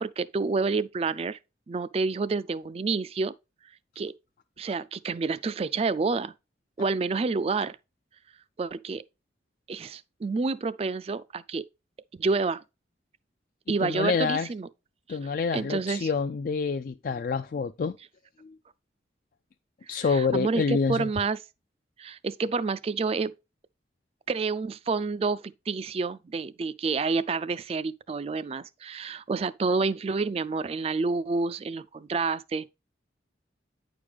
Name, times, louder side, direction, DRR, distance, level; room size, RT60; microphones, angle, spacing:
voice 1, 0.0-1.4 1.7-3.3 4.0-4.1 4.6-6.3 6.8-7.8 8.6-9.0 9.7-11.6 12.1-12.6 13.7-14.7 15.5-16.1 20.1-21.4 22.0-23.3 24.3-32.7, right 4 dB, 35° right, 0.3 m, -28 dB
voice 2, 13.8-14.5 15.1-17.9 18.4-18.6 19.9-21.1, left 5 dB, 50° left, 0.3 m, -27 dB
9.5 x 5.0 x 3.4 m
head